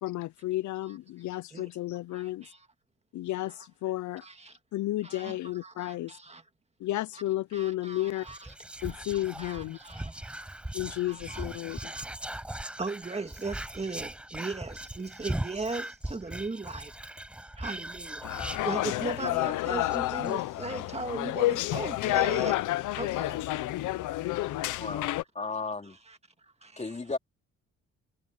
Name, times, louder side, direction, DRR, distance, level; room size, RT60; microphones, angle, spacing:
voice 1, 0.0-2.4 3.1-4.2 4.7-6.1 6.8-8.2 8.8-9.8 10.7-11.9, left 15 dB, 75° left, 0.6 m, -32 dB
voice 2, 2.1-2.7 3.5-3.6 4.2-4.6 5.0-6.4 7.1-7.2 7.5-8.5 8.8-10.4 11.1-12.1 12.8-16.9 17.6-18.3 18.6-22.6 23.0-23.4 26.1-26.2 26.6-27.0, right 3 dB, 20° right, 1.9 m, -38 dB
Whispering, 8.2-19.3 19.6-19.7 19.9-20.3, right 1 dB, 5° right, 0.5 m, -39 dB
sound 1, 18.2-25.2, left 16 dB, 90° left, 0.9 m, -29 dB
voice 3, 24.8-26.0 26.8-27.2, left 3 dB, 25° left, 3.5 m, -35 dB
cardioid pair, 90°, 30 cm